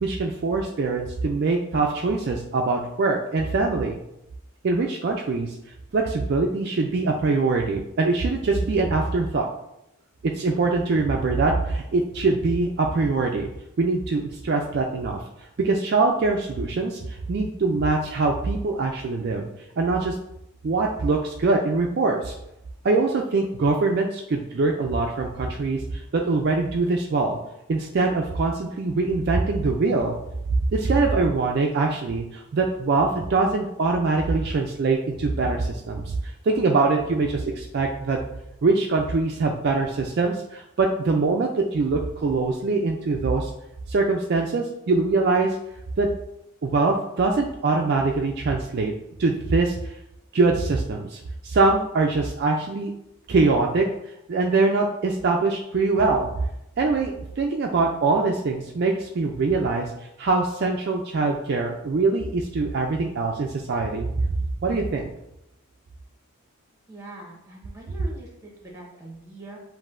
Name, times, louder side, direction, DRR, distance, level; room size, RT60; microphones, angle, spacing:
voice 1, 0.0-4.0 4.6-5.6 5.9-9.5 10.2-13.5 13.8-15.2 15.6-19.5 19.8-20.1 20.6-22.3 22.8-27.4 27.7-30.2 30.7-38.2 38.6-43.5 43.9-45.6 46.0-46.1 46.6-48.9 49.2-49.9 50.3-52.9 53.3-53.9 54.3-56.3 56.8-59.9 60.2-64.1 64.6-65.1, right 3 dB, 45° right, 1 dB, 0.3 m, -23 dB
voice 2, 66.9-69.6, right 1 dB, 15° right, -2 dB, 1.0 m, -42 dB
7.3 x 2.6 x 2.5 m, 0.84 s
head